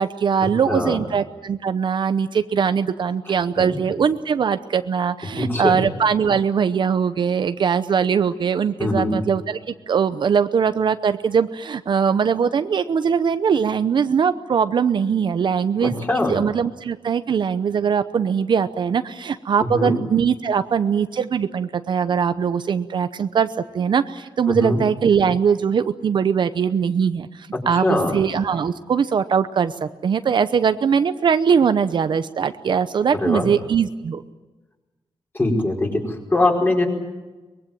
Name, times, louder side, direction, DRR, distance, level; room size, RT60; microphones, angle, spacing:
voice 1, 0.0-16.0 16.3-23.5 23.7-34.2, right 7 dB, 55° right, 11 dB, 0.8 m, -21 dB
voice 2, 0.7-1.0 3.6-3.8 5.4-5.8 8.8-9.2 15.8-16.3 19.6-20.0 24.5-24.8 27.7-28.2 33.2-33.5 35.3-36.9, left 2 dB, 20° left, 0 dB, 4.8 m, -22 dB
23.5 x 21.5 x 8.9 m, 1.2 s
wide cardioid pair, 160°, 10 cm